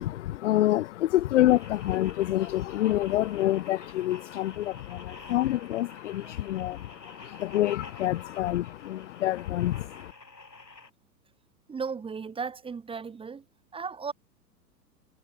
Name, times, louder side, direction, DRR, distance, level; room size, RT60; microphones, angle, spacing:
voice 1, 0.0-10.1, left 14 dB, 45° left, 1.0 m, -27 dB
sound 1, 1.5-10.9, left 3 dB, 80° left, 6.1 m, -49 dB
voice 2, 11.7-13.4 13.7-14.1, right 5 dB, 10° right, 2.3 m, -35 dB
figure-of-eight pair, 105°, 49 cm